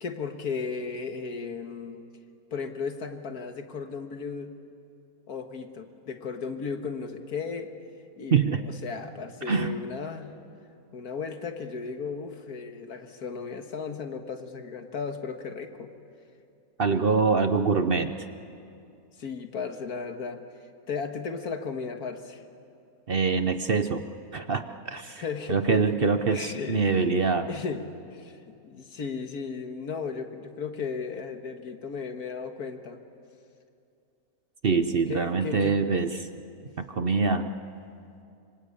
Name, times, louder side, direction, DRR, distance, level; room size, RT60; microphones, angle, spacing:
voice 1, 0.0-2.0 2.5-4.6 5.3-7.7 8.2-10.3 10.9-15.9 19.2-20.4 20.9-22.4 25.1-27.1 27.5-33.0 35.1-35.8 36.6-36.7, left 5 dB, 80° left, 6 dB, 2.0 m, -35 dB
voice 2, 8.3-8.7 9.5-9.8 16.8-18.3 23.1-24.0 24.3-25.2 25.5-27.5 34.6-36.3 36.8-37.5, right 5 dB, 45° right, 9 dB, 0.8 m, -25 dB
26.0 x 25.0 x 8.4 m, 2.6 s
omnidirectional pair, 1.6 m